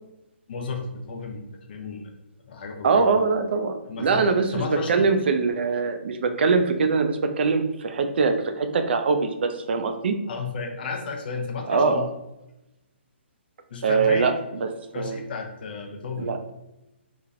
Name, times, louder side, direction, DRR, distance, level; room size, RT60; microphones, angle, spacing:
voice 1, 0.5-1.4 1.7-2.1 2.5-3.2 3.9-5.1 10.3-12.1 13.7-14.3 14.9-16.3, left 4 dB, 50° left, 3 dB, 0.6 m, -33 dB
voice 2, 2.8-10.1 11.7-12.1 13.8-14.3 14.6-14.7 15.0-15.2 16.2-16.4, right 4 dB, 60° right, 7 dB, 0.4 m, -22 dB
3.2 x 2.1 x 2.4 m, 0.94 s
hypercardioid pair, 155°, 7 cm